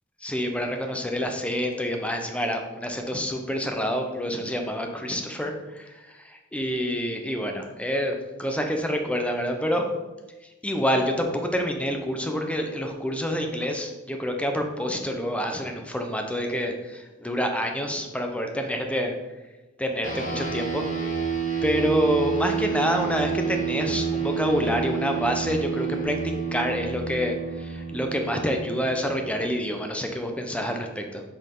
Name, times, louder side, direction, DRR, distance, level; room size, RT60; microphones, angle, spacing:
voice 1, 0.2-9.9 10.6-19.1 19.8-20.8 21.6-31.2, equal, 5° left, 4 dB, 0.8 m, -27 dB
sound 1, 20.0-29.8, right 6 dB, 40° left, 1.6 m, -29 dB
8.1 x 4.9 x 3.8 m, 1.1 s
head